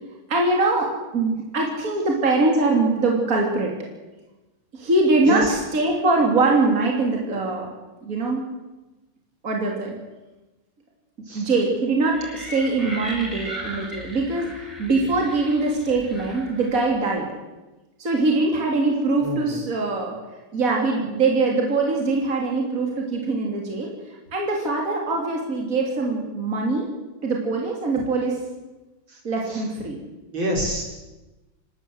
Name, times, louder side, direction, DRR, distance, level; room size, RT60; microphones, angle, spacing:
voice 1, 0.3-3.7 4.7-5.4 5.7-7.7 8.0-8.4 9.4-9.9 11.3-17.3 18.0-20.2 20.5-23.9 24.3-26.9 27.2-28.4 29.2-30.0, right 3 dB, 40° right, -1 dB, 3.4 m, -22 dB
voice 2, 5.2-5.6 11.2-11.5 19.2-19.6 29.1-29.7 30.3-30.8, equal, 65° right, 1 dB, 5.2 m, -27 dB
sound 1, 12.1-16.9, equal, ahead, 6.4 m, -37 dB
28.0 x 12.5 x 8.0 m, 1.1 s
omnidirectional pair, 2.4 m